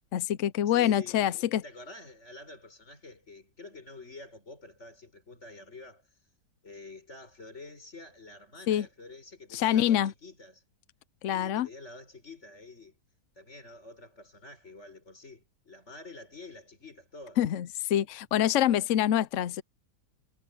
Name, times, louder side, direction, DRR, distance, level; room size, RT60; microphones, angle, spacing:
voice 1, 0.1-1.6 8.7-8.9 9.5-10.1 11.2-11.7 17.4-19.6, left 11 dB, 65° left, 0.7 m, -26 dB
voice 2, 0.7-6.1 6.6-10.6 11.3-13.0 13.4-17.4, left 3 dB, 40° left, 5.6 m, -48 dB
omnidirectional pair, 1.8 m